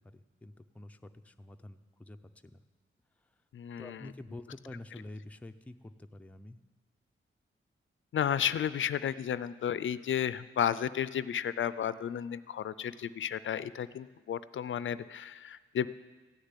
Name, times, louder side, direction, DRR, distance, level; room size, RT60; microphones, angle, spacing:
voice 1, 0.1-2.2 2.4-2.6 3.8-6.6, left 1 dB, 5° left, 6 dB, 0.4 m, -48 dB
voice 2, 3.5-4.1 8.1-15.9, left 9 dB, 70° left, 15 dB, 0.4 m, -33 dB
15.0 x 6.7 x 9.7 m, 1.3 s
wide cardioid pair, 165°, 21 cm